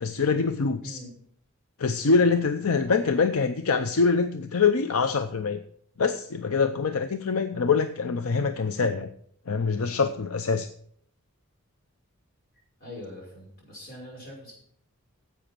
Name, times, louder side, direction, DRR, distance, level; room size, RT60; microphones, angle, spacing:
voice 1, 0.0-1.0 1.8-5.6 6.0-9.1 9.5-10.7, left 5 dB, 75° left, 9 dB, 0.6 m, -24 dB
voice 2, 0.8-1.1 12.8-14.5, left 1 dB, 40° left, -2 dB, 5.4 m, -42 dB
10.5 x 7.8 x 6.1 m, 0.62 s
head